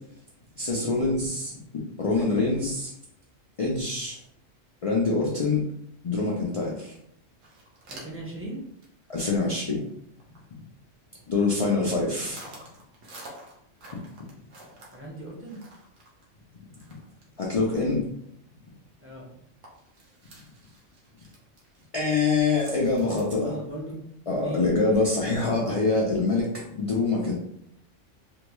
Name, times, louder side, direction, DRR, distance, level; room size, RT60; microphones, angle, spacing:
voice 1, 0.6-1.5 2.0-2.9 3.6-4.2 4.8-5.6 6.0-6.9 9.1-9.8 11.3-12.4 14.2-14.3 16.9-17.0 17.4-18.0 21.9-23.5 24.3-27.3, left 3 dB, 65° left, -4 dB, 0.3 m, -25 dB
voice 2, 2.1-2.5 7.9-8.6 14.9-15.6 19.0-19.3 23.3-24.0 24.3-24.6, right 1 dB, 15° right, -4 dB, 0.5 m, -38 dB
sound 1, 6.6-6.7 6.9-7.0 7.3-8.3 8.8-9.1 9.4-9.5 9.9-10.4 11.1-11.7 12.1-17.4 17.7-17.8 18.2-18.3 18.8-18.9 19.2-19.3 19.6-23.2, right 2 dB, 85° right, 1.2 m, -49 dB
3.5 x 2.2 x 3.0 m, 0.74 s
omnidirectional pair, 1.3 m